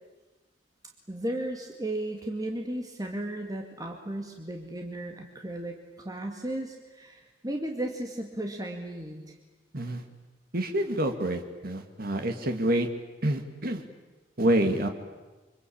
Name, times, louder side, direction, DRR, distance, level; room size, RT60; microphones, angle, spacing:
voice 1, 1.1-5.8 6.0-9.2, right 1 dB, 20° right, 2 dB, 2.3 m, -35 dB
voice 2, 10.5-12.9 13.2-13.8 14.4-14.9, right 1 dB, 55° right, 5 dB, 2.2 m, -27 dB
26.0 x 25.5 x 8.7 m, 1.2 s
head